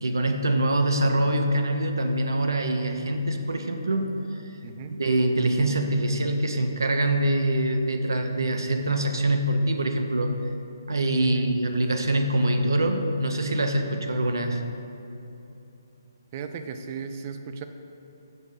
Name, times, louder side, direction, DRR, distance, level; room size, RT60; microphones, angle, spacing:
voice 1, 0.0-4.1 4.9-10.4 10.9-14.6, right 1 dB, 80° right, 5 dB, 0.7 m, -24 dB
voice 2, 4.6-4.9 11.2-11.5 16.3-17.6, right 6 dB, 35° right, 7 dB, 0.5 m, -36 dB
6.6 x 5.3 x 5.2 m, 2.9 s
figure-of-eight pair, 145°, 2 cm